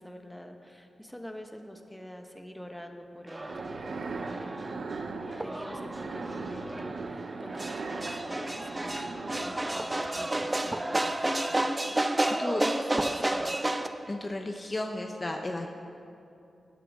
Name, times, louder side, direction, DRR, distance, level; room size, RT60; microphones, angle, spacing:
voice 1, 0.0-4.9 5.3-13.7, equal, 5° left, 4 dB, 1.2 m, -46 dB
sound 1, 3.3-13.9, right 1 dB, 20° right, 0.7 m, -31 dB
sound 2, 3.3-11.3, right 3 dB, 70° right, 0.8 m, -39 dB
voice 2, 12.3-12.6 14.1-15.7, left 2 dB, 35° left, 3 dB, 0.8 m, -33 dB
18.5 x 10.0 x 3.7 m, 2.7 s
cardioid pair, 60°, 0 cm